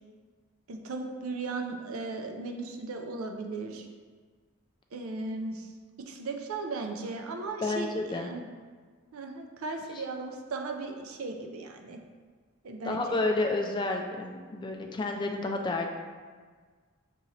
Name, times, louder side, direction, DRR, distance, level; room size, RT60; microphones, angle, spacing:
voice 1, 0.7-3.9 4.9-5.7 6.1-8.4 9.1-12.0 12.6-13.2, right 3 dB, 80° right, 3 dB, 0.5 m, -37 dB
voice 2, 7.6-8.3 12.9-15.9, left 2 dB, 20° left, 3 dB, 0.3 m, -30 dB
6.1 x 2.9 x 2.7 m, 1.5 s
head